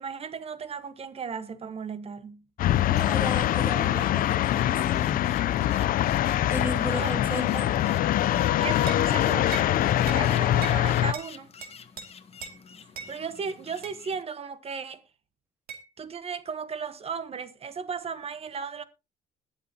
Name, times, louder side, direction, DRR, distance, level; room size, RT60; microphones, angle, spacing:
voice 1, 0.0-2.4 6.9-7.1 8.6-9.6 10.1-11.5 13.1-15.0 16.0-18.8, right 6 dB, 35° right, 1.2 m, -35 dB
sound 1, 2.6-11.1, left 12 dB, 55° left, 0.5 m, -24 dB
sound 2, 2.6-14.2, left 6 dB, 35° left, 1.1 m, -47 dB
voice 2, 2.9-5.2 6.5-7.8, right 1 dB, 10° right, 2.2 m, -35 dB
sound 3, 8.9-9.1 9.5-9.7 10.1-10.2 10.6-10.8 11.1-11.3 11.6-12.1 12.4-12.6 12.9-13.1 13.8-14.0 15.7-15.8, right 6 dB, 65° right, 2.5 m, -39 dB
21.0 x 7.2 x 2.8 m
cardioid pair, 110°, 17 cm